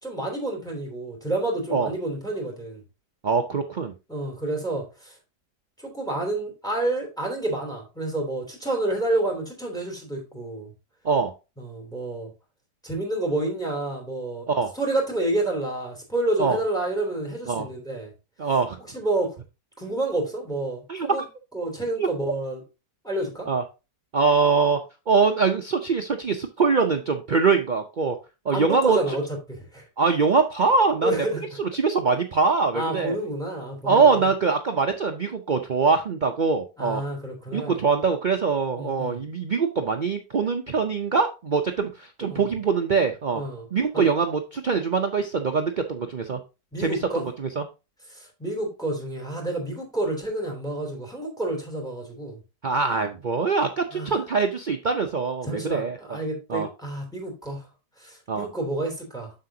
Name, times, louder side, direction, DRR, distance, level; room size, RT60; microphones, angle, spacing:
voice 1, 0.0-2.8 4.1-5.1 5.8-10.7 11.6-12.3 12.8-14.5 14.7-18.1 18.9-19.3 19.8-21.2 21.5-22.6 23.0-23.5 28.5-29.2 29.5-29.8 31.0-31.4 32.7-34.3 36.8-37.8 38.8-39.2 42.3-42.5 43.3-43.7 43.9-44.0 46.7-47.3 48.1-52.4 53.9-54.1 55.4-57.6 58.0-59.3, right 2 dB, ahead, 2.8 m, -29 dB
voice 2, 3.2-3.9 11.0-11.3 14.5-14.7 16.4-16.6 17.5-17.7 18.4-18.8 20.9-21.2 21.9-22.1 23.5-23.6 24.1-24.8 25.1-28.2 28.4-29.0 30.0-31.1 31.6-33.2 33.8-37.0 37.5-43.4 43.7-46.4 46.8-47.6 52.6-55.9 56.5-56.7 58.3-58.5, right 4 dB, 85° right, 0.4 m, -23 dB
7.6 x 6.7 x 2.7 m
omnidirectional pair, 1.8 m